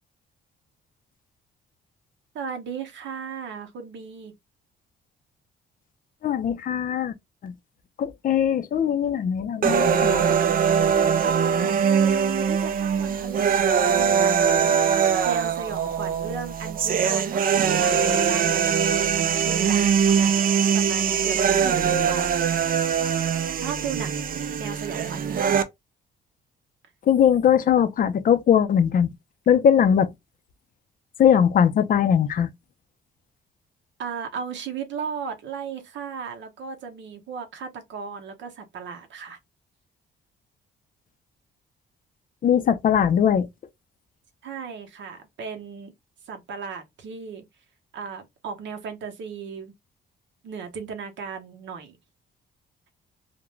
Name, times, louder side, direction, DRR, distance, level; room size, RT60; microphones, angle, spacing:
voice 1, 2.3-4.3 11.2-15.0 15.2-22.4 23.5-25.5 34.0-39.4 44.4-45.9 46.2-47.4 47.9-49.7 50.4-52.0, right 6 dB, 70° right, 0.8 m, -36 dB
voice 2, 6.2-7.1 7.4-7.5 8.0-10.3 27.1-29.1 29.5-30.1 31.2-32.5 42.4-43.5, left 8 dB, 45° left, 0.4 m, -20 dB
sound 1, 9.6-25.6, right 7 dB, 45° right, 0.4 m, -22 dB
2.4 x 2.1 x 3.0 m
cardioid pair, 90°, 20 cm